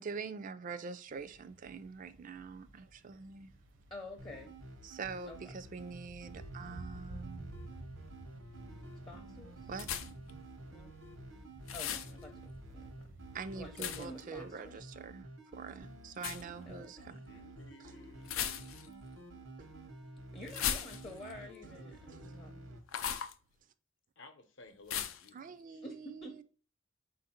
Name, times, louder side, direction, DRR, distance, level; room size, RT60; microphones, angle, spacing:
voice 1, 0.0-3.5 4.8-7.5 9.7-9.9 13.3-15.3 15.5-17.2 19.6-19.7 25.3-26.4, right 5 dB, 40° right, 0.3 m, -44 dB
sound 1, 1.1-14.0, right 2 dB, 70° right, 0.7 m, -53 dB
voice 2, 3.9-4.6 5.3-5.5 9.1-9.7 10.7-10.9 11.7-12.9 13.6-14.9 16.6-16.9 20.3-22.5 25.8-26.4, left 1 dB, 25° left, 0.6 m, -49 dB
sound 2, 4.2-22.8, right 2 dB, 90° right, 1.0 m, -51 dB
sound 3, 9.8-10.3 11.7-12.1 13.8-14.2 16.2-16.4 18.2-19.0 20.5-21.3 22.9-23.3 24.9-25.3, left 9 dB, 85° left, 0.4 m, -37 dB
voice 3, 17.1-18.8 24.2-25.9, left 2 dB, 65° left, 0.8 m, -57 dB
4.2 x 2.6 x 4.1 m
head